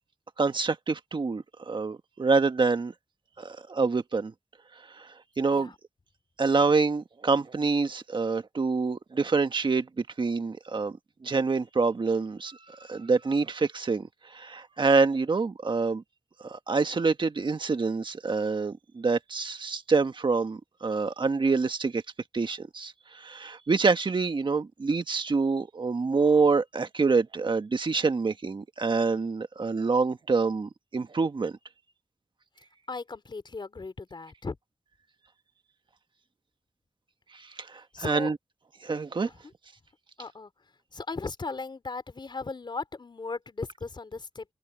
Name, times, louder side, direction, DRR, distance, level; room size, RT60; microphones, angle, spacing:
voice 1, 0.4-2.9 3.4-4.3 5.0-5.7 6.4-11.0 11.2-16.0 16.4-22.0 22.3-31.5 37.3-38.4 38.8-39.3, right 4 dB, 65° right, 1.6 m, -26 dB
voice 2, 32.9-34.6 37.9-38.3 39.2-39.4 40.2-40.5 40.9-44.5, left 3 dB, 60° left, 3.9 m, -37 dB
cardioid pair, 45°, 9 cm